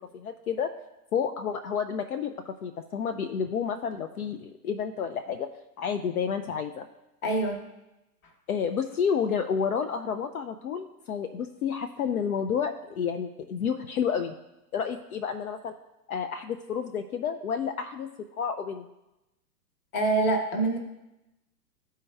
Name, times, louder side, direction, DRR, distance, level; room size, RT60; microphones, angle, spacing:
voice 1, 0.1-0.7 1.1-5.5 5.8-6.9 8.5-14.3 14.7-15.7 16.1-18.1 18.4-18.9, left 7 dB, 65° left, 7 dB, 0.6 m, -30 dB
voice 2, 7.2-7.6 19.9-20.8, right 2 dB, 25° left, 5 dB, 1.1 m, -25 dB
13.5 x 4.5 x 2.3 m, 0.95 s
figure-of-eight pair, 105°, 48 cm